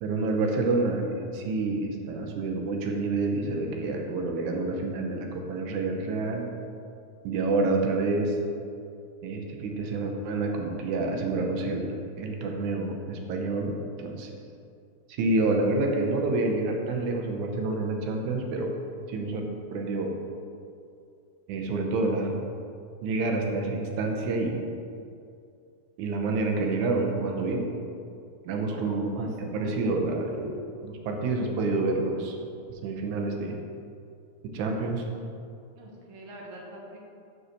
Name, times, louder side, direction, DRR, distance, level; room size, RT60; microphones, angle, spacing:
voice 1, 0.0-6.5 7.2-8.4 9.2-14.3 15.2-18.7 19.1-20.1 21.5-22.3 23.0-24.6 26.0-27.7 28.5-32.4 32.8-33.6 34.5-35.0, right 3 dB, 90° right, 2 dB, 2.3 m, -28 dB
voice 2, 28.4-29.4 35.7-37.0, right 1 dB, 55° right, -2 dB, 1.7 m, -45 dB
5.7 x 5.3 x 6.4 m, 2.5 s
omnidirectional pair, 3.3 m